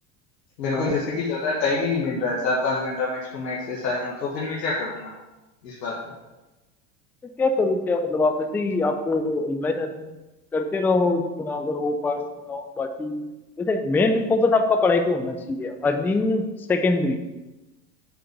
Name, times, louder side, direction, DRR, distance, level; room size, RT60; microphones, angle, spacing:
voice 1, 0.6-5.1 5.6-6.0, left 3 dB, 85° left, -3 dB, 1.5 m, -26 dB
voice 2, 7.4-10.1 10.5-13.3 13.6-17.2, left 3 dB, 5° left, 6 dB, 0.3 m, -23 dB
7.9 x 4.0 x 6.6 m, 1.1 s
hypercardioid pair, 90°, 49 cm